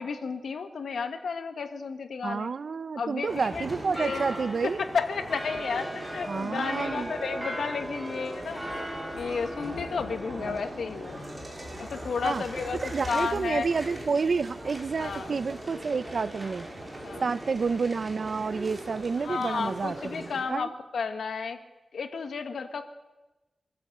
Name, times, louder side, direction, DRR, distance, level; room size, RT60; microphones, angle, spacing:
voice 1, 0.0-2.5 3.0-3.7 3.9-4.2 4.8-8.6 9.1-11.2 11.8-12.8 13.1-13.7 15.0-15.4 17.0-17.3 19.2-21.6 21.9-22.9, left 5 dB, 85° left, 7 dB, 1.5 m, -32 dB
voice 2, 2.2-4.8 6.3-7.1 10.4-10.6 12.2-12.4 12.8-16.7 17.2-20.7, right 5 dB, 55° right, 16 dB, 0.6 m, -29 dB
sound 1, 3.3-20.4, right 1 dB, 15° right, 5.1 m, -38 dB
sound 2, 3.8-19.1, left 2 dB, 65° left, 6.9 m, -50 dB
24.0 x 14.0 x 7.9 m, 1.1 s
wide cardioid pair, 120°, 0 cm